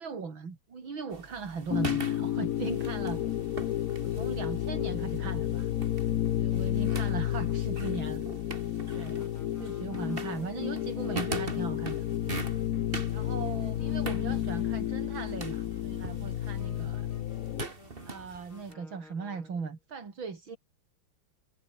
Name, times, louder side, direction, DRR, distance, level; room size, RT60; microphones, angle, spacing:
voice 1, 0.0-3.2 4.0-5.7 6.4-8.3 8.9-9.3 9.6-12.1 13.1-17.1 18.1-20.6, right 5 dB, 70° right, 3.9 m, -38 dB
sound 1, 1.1-18.7, right 3 dB, 25° right, 2.4 m, -43 dB
sound 2, 1.7-17.6, left 12 dB, 70° left, 0.8 m, -31 dB
sound 3, 8.8-19.8, left 3 dB, 90° left, 6.6 m, -55 dB
omnidirectional pair, 2.3 m